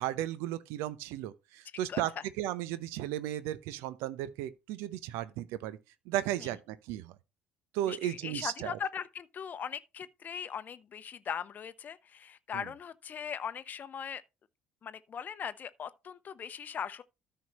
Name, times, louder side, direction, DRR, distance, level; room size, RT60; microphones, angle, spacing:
voice 1, 0.0-5.8 6.1-7.1 7.7-8.8 12.5-12.6, right 13 dB, 65° right, 0.8 m, -35 dB
voice 2, 7.9-14.2 14.8-17.0, left 7 dB, 40° left, 0.7 m, -39 dB
13.5 x 5.6 x 3.1 m
figure-of-eight pair, 55°, 4 cm